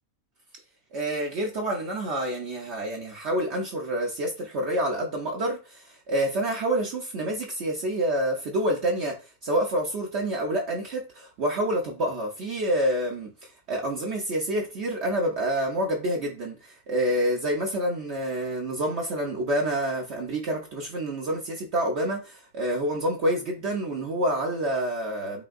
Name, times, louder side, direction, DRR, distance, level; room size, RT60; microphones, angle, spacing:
voice 1, 0.9-9.2 9.4-13.3 13.7-25.4, right 1 dB, 60° right, 0.8 m, -28 dB
5.0 x 2.7 x 2.4 m
omnidirectional pair, 1.5 m